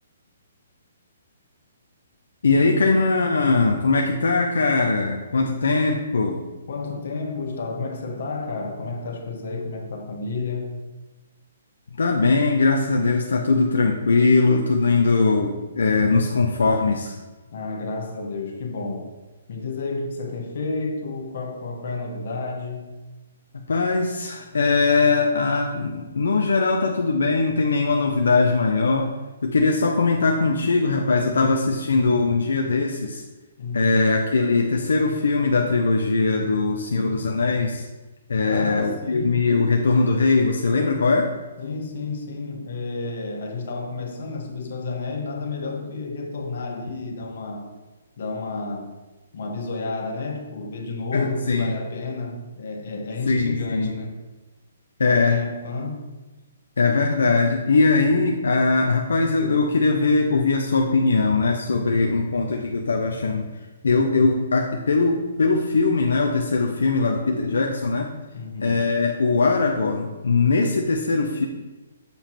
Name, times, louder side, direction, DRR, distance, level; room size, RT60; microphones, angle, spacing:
voice 1, 2.4-6.4 12.0-17.2 23.5-29.1 29.4-33.2 33.7-37.8 38.3-41.3 51.1-51.7 53.3-53.9 55.0-55.4 56.8-63.5 63.8-68.1 68.6-71.4, left 3 dB, 85° left, 1 dB, 0.6 m, -21 dB
voice 2, 6.7-10.8 17.5-19.1 19.5-23.0 33.6-34.0 38.5-39.5 41.6-47.7 48.2-49.0 49.3-54.1 55.0-56.1 68.3-68.9, left 3 dB, 60° left, 2 dB, 1.2 m, -31 dB
7.0 x 3.0 x 5.7 m, 1.2 s
hypercardioid pair, 155°, 0 cm